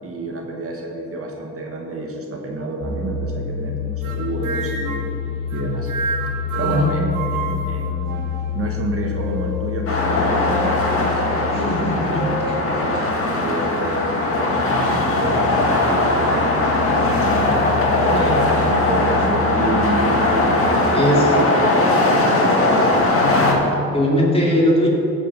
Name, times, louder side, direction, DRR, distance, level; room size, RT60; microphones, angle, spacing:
voice 1, 0.0-5.1 5.5-5.9 6.5-11.7 12.1-20.5 20.9-23.4, right 2 dB, 50° right, 1 dB, 1.4 m, -29 dB
sound 1, 2.8-20.8, left 7 dB, 90° left, 1.9 m, -29 dB
sound 2, 4.0-5.1 5.5-8.7 9.2-9.8 10.4-10.8 11.3-11.5 12.2-12.5, right 4 dB, 80° right, 1.2 m, -30 dB
voice 2, 6.6-6.9 11.5-12.6 18.1-18.3 20.9-21.3 23.9-24.9, equal, 20° left, -4 dB, 2.7 m, -20 dB
sound 3, 9.9-23.5, left 2 dB, 45° left, 2.0 m, -19 dB
14.5 x 5.1 x 5.7 m, 2.9 s
cardioid pair, 90°, 30 cm